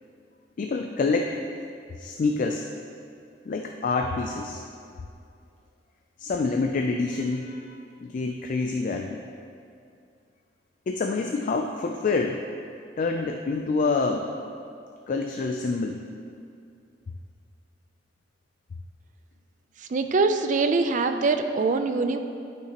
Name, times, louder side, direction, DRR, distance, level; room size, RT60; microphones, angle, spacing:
voice 1, 0.6-1.4 2.0-2.7 3.5-4.6 6.2-7.7 8.0-9.2 10.9-12.4 13.0-14.3 15.1-16.0, left 3 dB, 45° left, 3 dB, 0.3 m, -27 dB
voice 2, 19.9-22.2, right 3 dB, 45° right, 7 dB, 0.4 m, -23 dB
11.0 x 6.0 x 2.9 m, 2.4 s
head